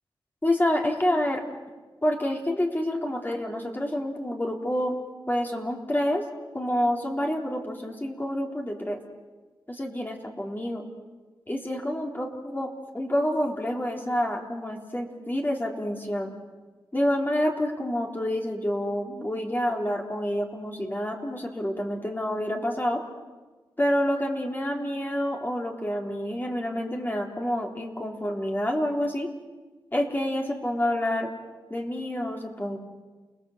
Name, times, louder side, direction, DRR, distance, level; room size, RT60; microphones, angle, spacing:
voice 1, 0.4-1.4 2.0-5.0 5.3-6.2 6.5-9.0 9.7-10.8 11.5-16.3 16.9-23.0 23.8-29.3 29.9-31.3 31.7-32.8, left 1 dB, 20° left, 1 dB, 3.6 m, -28 dB
29.5 x 19.5 x 8.0 m, 1.3 s
cardioid pair, 70°, 9 cm